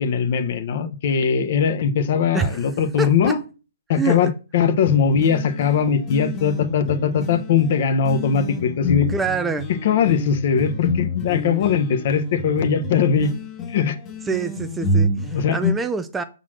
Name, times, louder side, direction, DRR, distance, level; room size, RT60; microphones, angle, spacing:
voice 1, 0.0-3.4 3.9-9.1 9.8-13.3 13.7-14.0 15.3-15.6, left 7 dB, 50° left, 1.1 m, -20 dB
voice 2, 2.3-2.7 3.0-3.4 3.9-4.3 9.1-9.7 14.3-16.2, right 5 dB, 10° right, 0.4 m, -26 dB
sound 1, 4.8-15.7, left 1 dB, 20° left, 1.2 m, -28 dB
6.0 x 4.0 x 6.3 m
hypercardioid pair, 140°, 0 cm